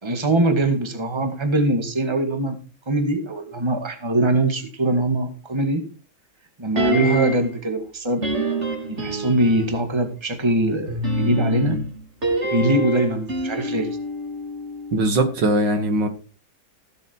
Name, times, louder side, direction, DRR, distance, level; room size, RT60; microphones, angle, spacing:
voice 1, 0.0-2.6 2.9-5.8 6.6-8.2 8.8-11.8 12.5-14.0, right 1 dB, 15° right, 2.0 m, -22 dB
sound 1, 6.8-7.6 8.2-9.8 10.9-15.1 15.4-15.5, right 1 dB, 35° right, 3.9 m, -25 dB
voice 2, 14.9-16.1, right 1 dB, 65° right, 2.4 m, -20 dB
16.0 x 7.9 x 4.7 m
omnidirectional pair, 2.1 m